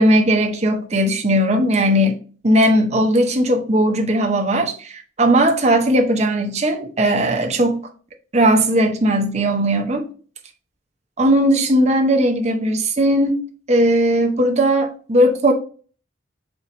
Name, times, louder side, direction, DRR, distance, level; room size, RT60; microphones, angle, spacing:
voice 1, 0.0-2.2 2.4-7.8 8.3-10.1 11.2-15.5, right 1 dB, 35° right, 0.7 m, -17 dB
4.3 x 2.9 x 3.8 m
head